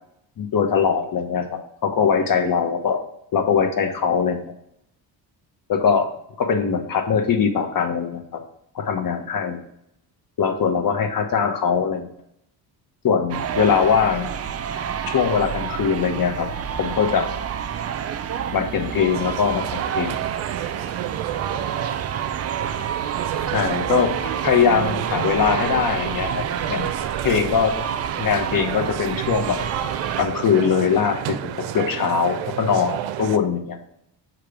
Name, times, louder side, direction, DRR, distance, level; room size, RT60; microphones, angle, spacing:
voice 1, 0.4-3.0 3.3-4.5 5.7-6.1 6.4-8.4 8.7-9.6 10.4-12.1 13.0-14.3 15.1-16.5 16.8-17.3 18.5-20.1 23.5-24.1 24.4-26.9 27.2-27.7 28.2-29.6 30.2-33.8, left 6 dB, 50° left, 6 dB, 1.1 m, -21 dB
sound 1, 13.3-30.2, right 8 dB, 35° right, 0.5 m, -29 dB
sound 2, 19.1-33.4, right 12 dB, 85° right, 0.5 m, -30 dB
7.0 x 3.1 x 4.9 m, 0.76 s
cardioid pair, 90°, 44 cm